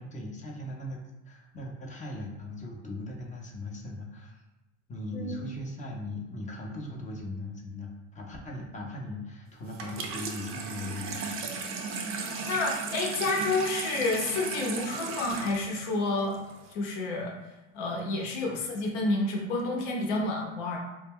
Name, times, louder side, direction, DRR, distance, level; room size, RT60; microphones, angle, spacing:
voice 1, 0.0-4.4 4.9-11.7 18.2-18.6, left 1 dB, 20° left, -1 dB, 0.5 m, -39 dB
Water tap faucet / Sink (filling or washing), 9.7-16.7, right 4 dB, 35° right, 0.5 m, -36 dB
voice 2, 12.4-16.4 16.7-17.3 17.7-20.8, left 2 dB, 70° left, 0 dB, 0.8 m, -29 dB
2.1 x 2.1 x 3.5 m, 0.99 s
hypercardioid pair, 85°, 37 cm